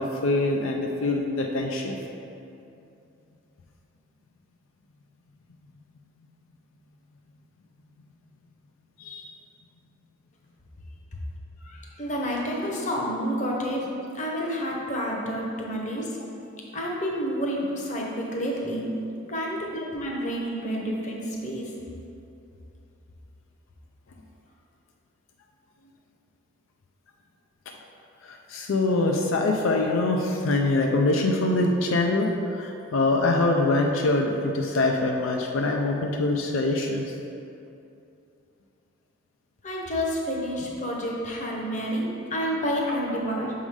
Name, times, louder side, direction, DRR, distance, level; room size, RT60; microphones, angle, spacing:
voice 1, 0.0-2.0 9.0-9.2 28.2-32.3 32.6-37.0, left 2 dB, 80° left, 1 dB, 0.4 m, -24 dB
voice 2, 11.6-13.9 14.1-16.2 16.7-18.9 19.3-21.7 39.6-43.5, equal, 35° left, -2 dB, 0.8 m, -29 dB
6.3 x 3.8 x 4.8 m, 2.7 s
head